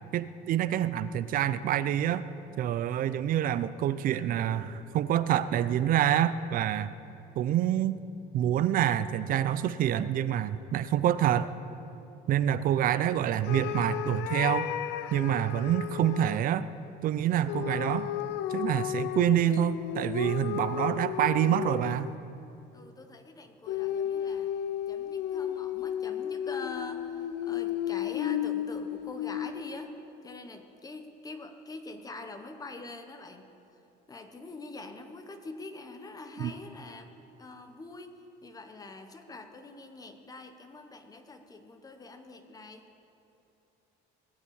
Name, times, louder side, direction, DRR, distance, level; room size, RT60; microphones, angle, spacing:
voice 1, 0.1-2.2 2.6-6.9 7.4-8.0 8.3-11.5 12.3-14.7 15.1-16.7 17.0-18.1 18.5-22.1 36.4-36.5, right 11 dB, 50° right, 15 dB, 0.5 m, -27 dB
sound 1, 13.4-16.4 17.5-22.2 23.7-29.8, left 11 dB, 75° left, 0.6 m, -33 dB
voice 2, 22.7-24.5 24.9-29.9 30.2-33.5 34.1-37.1 37.4-42.8, left 2 dB, 20° left, 6 dB, 1.0 m, -44 dB
19.5 x 7.4 x 8.6 m, 2.8 s
cardioid pair, 150°, 19 cm